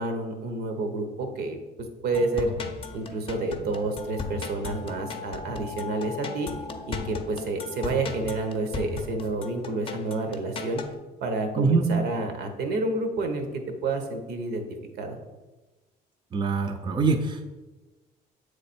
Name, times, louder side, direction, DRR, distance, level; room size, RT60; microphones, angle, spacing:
voice 1, 0.0-1.6 2.0-2.5 2.9-6.5 6.9-10.8 11.2-14.6 15.0-15.2, right 2 dB, 70° right, 5 dB, 1.0 m, -29 dB
sound 1, 2.1-11.0, left 4 dB, 30° left, 0.6 m, -37 dB
voice 2, 11.6-11.9 16.3-17.6, right 4 dB, 30° right, 4 dB, 0.5 m, -24 dB
7.4 x 3.3 x 4.2 m, 1.2 s
cardioid pair, 110°, 17 cm